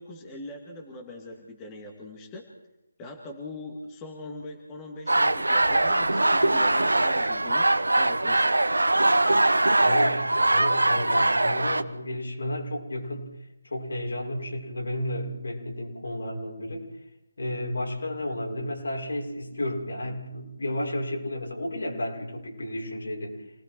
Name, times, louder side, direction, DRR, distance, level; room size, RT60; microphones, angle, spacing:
voice 1, 0.0-2.5 3.0-7.7 8.0-8.4, left 1 dB, 15° left, 1 dB, 2.5 m, -41 dB
sound 1, 5.1-11.8, right 2 dB, 80° right, 1.1 m, -22 dB
voice 2, 9.8-13.3 13.6-16.9 17.4-23.4, left 1 dB, 70° left, -1 dB, 6.2 m, -32 dB
28.5 x 19.5 x 4.6 m, 0.91 s
figure-of-eight pair, 150°, 0 cm